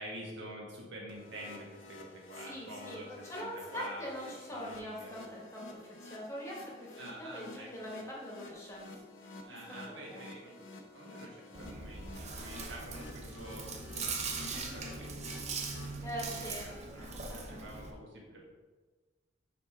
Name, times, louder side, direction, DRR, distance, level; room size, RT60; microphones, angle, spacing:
voice 1, 0.0-5.2 7.0-7.9 9.5-10.6 10.9-15.5 16.2-18.5, right 1 dB, 70° right, -3 dB, 1.8 m, -48 dB
sound 1, 1.1-15.9, left 2 dB, 85° left, 0.9 m, -51 dB
voice 2, 2.3-8.9 9.2-9.4 10.1-10.2 16.0-17.6, equal, 15° left, -4 dB, 1.4 m, -43 dB
Chewing mastication, 11.5-17.9, right 4 dB, 35° right, 0.7 m, -40 dB
6.8 x 5.1 x 3.7 m, 1.3 s
head